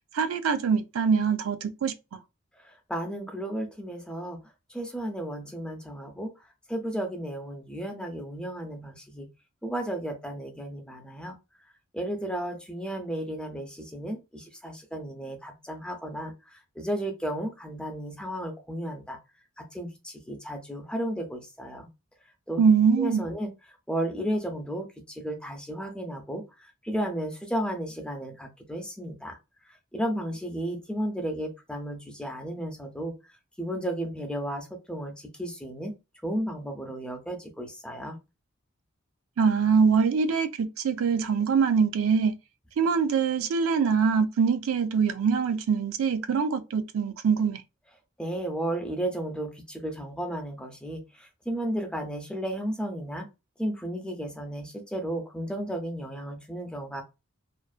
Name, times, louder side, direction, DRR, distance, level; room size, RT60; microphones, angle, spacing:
voice 1, 0.1-2.2 22.6-23.3 39.4-42.3 42.8-47.6, right 6 dB, 85° right, 0.4 m, -24 dB
voice 2, 2.9-4.4 4.7-6.3 6.7-9.3 9.6-11.4 11.9-16.3 16.8-19.2 19.6-21.9 22.5-22.6 23.0-23.5 23.9-26.4 26.8-29.4 29.9-33.1 33.6-35.1 35.4-35.9 36.2-38.2 48.2-53.3 53.6-57.0, right 1 dB, 5° left, 0.5 m, -33 dB
2.5 x 2.2 x 2.3 m
head